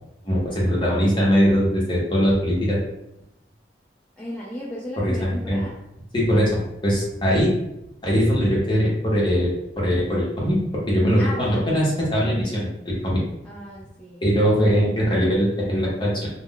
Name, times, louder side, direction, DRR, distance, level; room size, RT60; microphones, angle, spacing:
voice 1, 0.2-2.8 5.0-5.6 6.1-7.5 8.0-10.6 10.9-13.2 14.2-16.3, equal, 25° left, -5 dB, 0.9 m, -21 dB
voice 2, 4.2-5.8 11.2-12.3 13.4-14.3, equal, 5° left, -8 dB, 0.4 m, -36 dB
2.3 x 2.2 x 3.6 m, 0.84 s
head